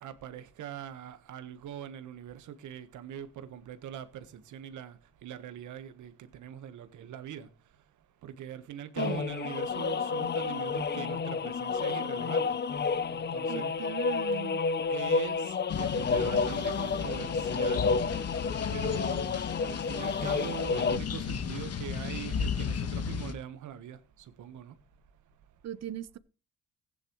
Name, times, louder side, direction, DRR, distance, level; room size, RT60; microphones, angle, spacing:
voice 1, 0.0-5.0 5.2-7.5 8.2-12.5 13.1-13.7 14.9-17.9 18.7-24.0 24.4-24.7, right 9 dB, 75° right, 1.4 m, -42 dB
sound 1, 9.0-21.0, left 5 dB, 35° left, 0.7 m, -30 dB
voice 2, 13.5-14.6 25.6-26.2, right 11 dB, 60° right, 0.9 m, -38 dB
sound 2, 15.7-23.3, left 7 dB, 55° left, 1.4 m, -35 dB
16.0 x 9.9 x 3.2 m
cardioid pair, 90°, 30 cm